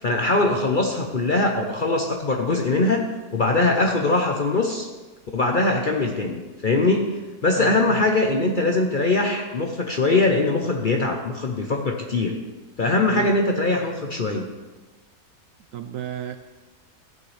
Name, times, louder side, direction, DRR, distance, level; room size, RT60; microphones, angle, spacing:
voice 1, 0.0-3.1 3.3-4.9 5.3-12.4 12.8-14.5, left 2 dB, 45° left, 2 dB, 0.7 m, -22 dB
voice 2, 7.6-8.1 13.1-13.3 15.7-16.4, right 10 dB, 70° right, 8 dB, 0.9 m, -32 dB
14.5 x 8.8 x 3.3 m, 1.2 s
omnidirectional pair, 1.7 m